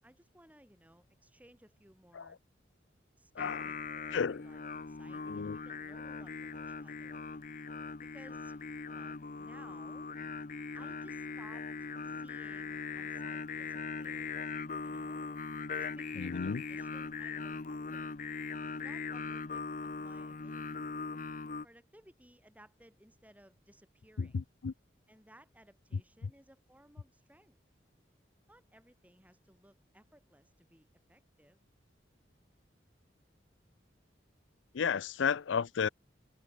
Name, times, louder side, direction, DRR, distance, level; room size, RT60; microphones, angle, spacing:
voice 1, 0.0-2.4 3.2-7.2 8.0-10.1 10.7-11.7 12.0-14.5 14.8-18.1 18.8-20.8 21.6-24.4 25.1-27.6 28.5-31.6 33.7-33.8, right 1 dB, 10° right, 6.6 m, -60 dB
Singing, 3.4-21.7, left 4 dB, 45° left, 0.7 m, -40 dB
voice 2, 4.1-4.4 5.3-5.6 16.1-16.6 24.2-24.7 26.2-26.3 34.7-35.9, left 6 dB, 85° left, 0.5 m, -33 dB
head